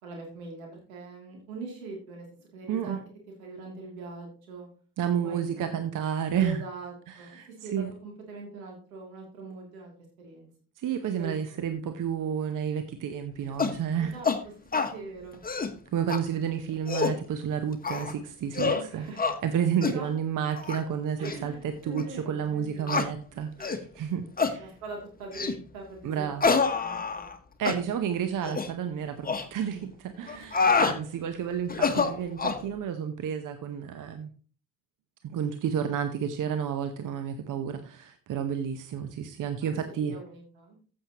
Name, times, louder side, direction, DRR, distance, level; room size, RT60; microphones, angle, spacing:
voice 1, 0.0-2.3 2.5-3.0 3.4-4.7 5.2-5.8 6.3-9.9 10.2-10.5 11.2-11.4 14.1-14.3 14.7-15.4 18.7-19.2 19.8-20.1 21.2-23.0 23.6-23.7 24.6-27.3 30.3-30.6 39.6-39.7 40.0-40.8, right 3 dB, 80° right, 0 dB, 3.0 m, -42 dB
voice 2, 2.7-3.0 5.0-6.6 7.1-7.9 10.8-14.1 15.9-19.1 19.4-24.7 26.0-26.4 27.6-34.3 35.2-40.1, right 8 dB, 50° right, 8 dB, 1.0 m, -31 dB
sound 1, 13.6-13.8 14.2-14.4 14.7-14.9 15.3-15.7 16.1-16.2 16.7-17.2 17.8-18.1 18.5-18.8 19.2-19.4 19.8-20.0 20.6-20.8 21.2-21.4 22.0-22.1 22.9-23.1 23.6-23.8 24.4-24.6 25.3-25.6 26.4-27.4 27.6-27.8 28.4-28.7 29.2-29.4 30.3-31.0 31.7-32.6, left 5 dB, 20° left, 1.2 m, -26 dB
14.5 x 6.6 x 3.0 m, 0.40 s
figure-of-eight pair, 45°, 41 cm